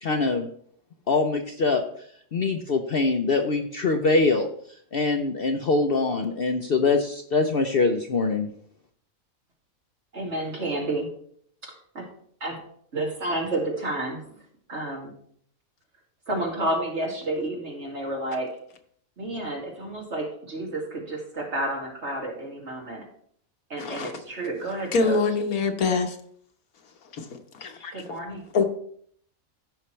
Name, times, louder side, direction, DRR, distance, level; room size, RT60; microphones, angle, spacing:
voice 1, 0.0-0.5 1.1-1.8 2.3-4.5 4.9-8.5, left 3 dB, 50° left, 5 dB, 0.8 m, -23 dB
voice 2, 10.1-11.1 11.9-12.0 12.4-12.6 12.9-14.4 14.7-15.1 16.3-18.5 19.2-23.0 23.7-25.2 27.9-28.5, right 1 dB, 50° right, -2 dB, 2.7 m, -30 dB
voice 3, 23.8-24.1 24.9-26.2 27.1-27.3 27.5-28.0 28.5-28.6, left 4 dB, 85° left, 5 dB, 1.6 m, -24 dB
15.0 x 5.7 x 3.2 m, 0.63 s
omnidirectional pair, 1.5 m